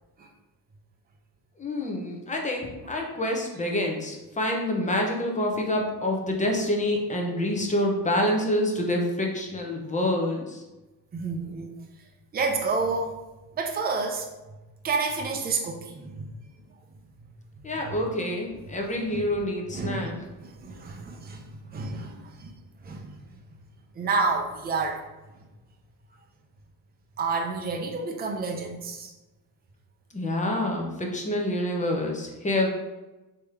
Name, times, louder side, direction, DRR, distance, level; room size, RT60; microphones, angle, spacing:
voice 1, 1.6-10.6 17.6-20.2 30.1-32.7, left 1 dB, 20° left, 1 dB, 0.8 m, -27 dB
voice 2, 11.1-11.7 12.3-13.3 13.5-14.3 14.8-16.3 17.8-17.9 19.1-19.2 19.7-22.5 22.8-23.2 23.9-25.0 27.2-29.1, right 4 dB, 25° right, 1 dB, 0.6 m, -29 dB
3.4 x 2.9 x 4.7 m, 1.1 s
cardioid pair, 115°, 39 cm